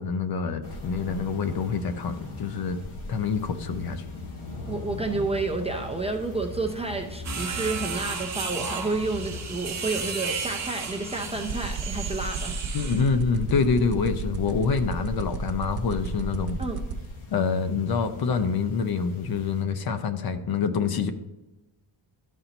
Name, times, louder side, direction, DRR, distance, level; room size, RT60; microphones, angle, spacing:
voice 1, 0.0-2.8 3.1-4.0 12.7-16.6 17.3-21.1, left 5 dB, 50° left, 10 dB, 0.6 m, -26 dB
sound 1, 0.6-19.6, left 2 dB, 85° left, 1.4 m, -41 dB
voice 2, 4.7-12.5 16.6-16.8, right 3 dB, 15° right, 1 dB, 0.4 m, -30 dB
sound 2, 7.2-13.1, right 5 dB, 35° right, 1.1 m, -34 dB
sound 3, 11.5-17.1, right 10 dB, 70° right, 1.0 m, -32 dB
12.0 x 4.3 x 3.9 m, 1.0 s
wide cardioid pair, 175°, 48 cm